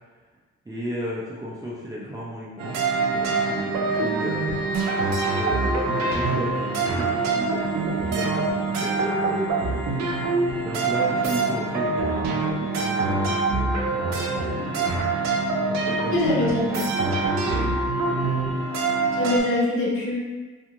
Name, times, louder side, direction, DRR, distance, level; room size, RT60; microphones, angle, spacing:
voice 1, 0.7-2.8 3.1-4.6 5.4-9.8 10.6-14.9 15.7-16.8 17.4-17.8, right 1 dB, 10° right, -6 dB, 0.5 m, -34 dB
sound 1, 2.6-19.4, right 3 dB, 65° right, 0.6 m, -24 dB
voice 2, 16.1-16.8 19.2-20.2, left 1 dB, 45° left, -6 dB, 1.0 m, -23 dB
2.5 x 2.4 x 2.9 m, 1.3 s
cardioid pair, 90°, 30 cm